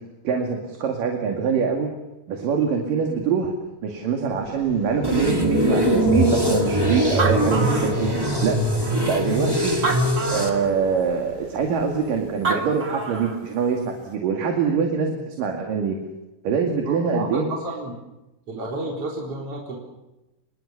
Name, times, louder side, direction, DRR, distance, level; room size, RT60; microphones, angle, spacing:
voice 1, 0.2-1.9 2.3-3.5 3.8-8.1 8.4-8.6 9.1-9.8 10.3-16.0 16.4-17.5, right 6 dB, 75° right, 2 dB, 3.9 m, -24 dB
sound 1, 4.3-12.4, left 2 dB, 25° left, 7.5 m, -29 dB
sound 2, 5.0-10.5, right 1 dB, 10° right, 2.1 m, -23 dB
Animal, 7.2-8.4 9.1-9.2 9.7-10.7 12.2-12.3 12.4-13.4, right 3 dB, 25° right, 2.4 m, -27 dB
voice 2, 16.8-17.9 18.5-19.8, right 2 dB, 45° right, -1 dB, 4.9 m, -31 dB
26.5 x 22.5 x 7.1 m, 0.99 s
omnidirectional pair, 3.9 m